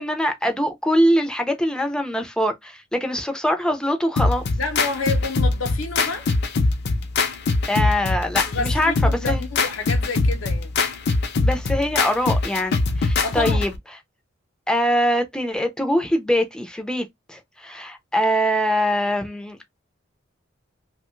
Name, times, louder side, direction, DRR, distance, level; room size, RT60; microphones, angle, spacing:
voice 1, 0.0-4.4 7.7-8.9 9.3-9.4 11.4-13.7 14.7-19.8, equal, 5° left, 0.5 m, -23 dB
sound 1, 4.2-13.8, left 3 dB, 55° left, 0.5 m, -22 dB
voice 2, 4.6-6.3 8.4-10.7 13.2-13.7, left 3 dB, 90° left, 0.8 m, -29 dB
2.9 x 2.2 x 3.0 m
head